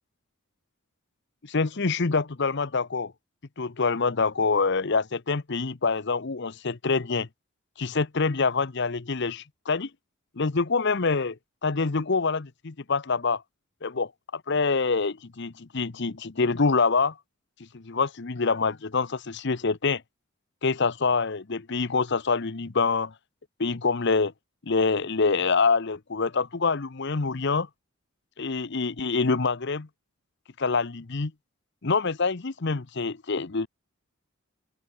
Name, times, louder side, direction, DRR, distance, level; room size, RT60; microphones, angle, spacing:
voice 1, 1.4-3.1 3.6-7.3 7.8-9.9 10.4-11.4 11.6-13.4 13.8-14.1 14.5-17.2 17.7-20.0 20.6-23.1 23.6-24.3 24.7-27.7 28.4-29.9 30.6-31.3 31.8-33.7, left 4 dB, 55° left, 0.8 m, -26 dB
open air
head